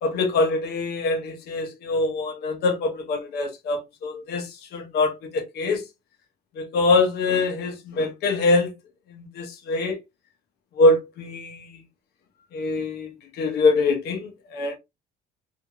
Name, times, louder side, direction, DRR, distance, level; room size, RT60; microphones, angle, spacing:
voice 1, 0.0-5.8 6.6-8.7 9.1-10.0 10.8-11.8 12.5-13.1 13.3-14.8, left 3 dB, 75° left, 1.0 m, -24 dB
2.9 x 2.8 x 2.3 m
cardioid pair, 110°, 17 cm